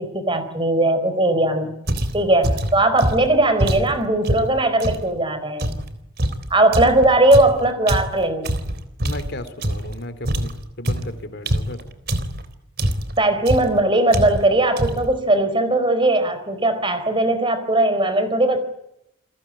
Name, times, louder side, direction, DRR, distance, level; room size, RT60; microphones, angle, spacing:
voice 1, 0.0-1.7 2.1-5.8 6.5-8.6 13.2-18.6, right 1 dB, 25° right, 11 dB, 4.3 m, -19 dB
sound 1, 1.9-5.1 5.6-10.0 10.2-12.5 12.8-13.2 13.5-13.8 14.1-14.5 14.8-15.2, equal, 50° right, 3.7 m, -24 dB
voice 2, 9.0-11.9, left 1 dB, 55° left, 11 dB, 3.3 m, -34 dB
29.5 x 22.0 x 8.8 m, 0.81 s
head